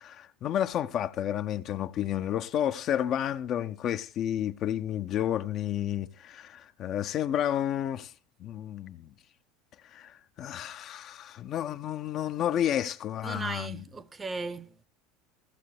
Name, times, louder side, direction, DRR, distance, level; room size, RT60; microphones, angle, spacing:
voice 1, 0.0-8.1 8.4-9.1 9.9-13.8, left 10 dB, 45° left, 0.6 m, -31 dB
voice 2, 13.2-14.8, right 3 dB, 20° right, 0.8 m, -37 dB
15.0 x 15.0 x 3.3 m
figure-of-eight pair, 75°, 0 cm